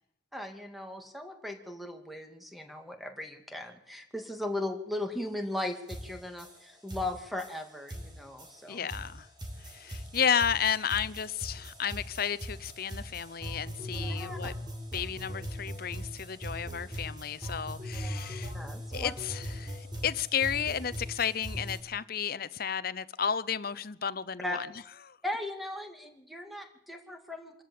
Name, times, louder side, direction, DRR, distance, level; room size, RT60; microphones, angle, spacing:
voice 1, 0.3-8.9 14.2-14.4 18.5-19.1 24.4-24.6 25.2-27.6, left 1 dB, ahead, 2.3 m, -37 dB
sound 1, 5.6-5.7 5.9-21.8, equal, 25° right, 4.9 m, -40 dB
voice 2, 8.7-9.3 9.6-14.5 14.9-18.5 18.9-24.7 25.1-25.2, left 7 dB, 50° left, 0.7 m, -32 dB
26.0 x 13.5 x 8.6 m
head